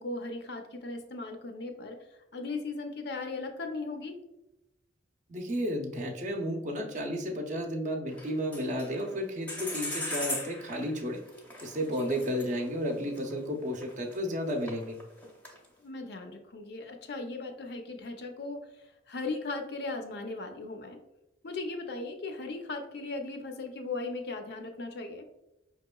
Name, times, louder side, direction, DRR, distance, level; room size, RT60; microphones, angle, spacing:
voice 1, 0.0-4.2 11.9-12.2 15.8-21.0 21.4-25.3, left 3 dB, 55° left, 5 dB, 0.5 m, -38 dB
voice 2, 5.3-11.2 11.6-15.0, equal, 40° right, 2 dB, 0.6 m, -32 dB
sound 1, 8.1-9.2 9.5-14.2 14.5-15.7, left 1 dB, 10° left, 0.6 m, -38 dB
5.0 x 2.9 x 2.2 m, 0.92 s
head